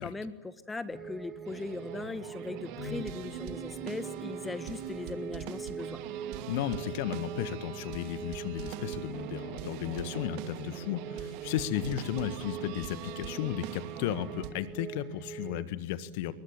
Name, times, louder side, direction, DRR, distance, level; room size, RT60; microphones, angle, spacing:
voice 1, 0.0-6.0, left 3 dB, 10° left, 13 dB, 1.6 m, -39 dB
sound 1, 0.9-15.6, right 7 dB, 20° right, 1.4 m, -44 dB
sound 2, 1.4-14.5, right 10 dB, 45° right, 2.5 m, -42 dB
voice 2, 2.8-3.1 6.5-16.3, left 12 dB, 50° left, 14 dB, 1.6 m, -34 dB
28.5 x 22.5 x 8.8 m, 0.95 s
figure-of-eight pair, 90°, 0 cm